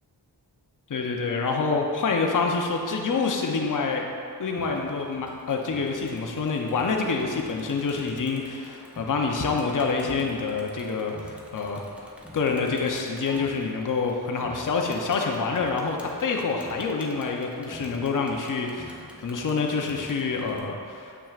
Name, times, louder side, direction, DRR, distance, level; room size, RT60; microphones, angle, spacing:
voice 1, 0.9-4.1 4.4-21.2, left 4 dB, 45° left, 1 dB, 0.7 m, -27 dB
Crowd, 4.6-20.6, left 1 dB, 5° right, 0.7 m, -47 dB
7.1 x 5.7 x 2.4 m, 2.3 s
cardioid pair, 50°, 43 cm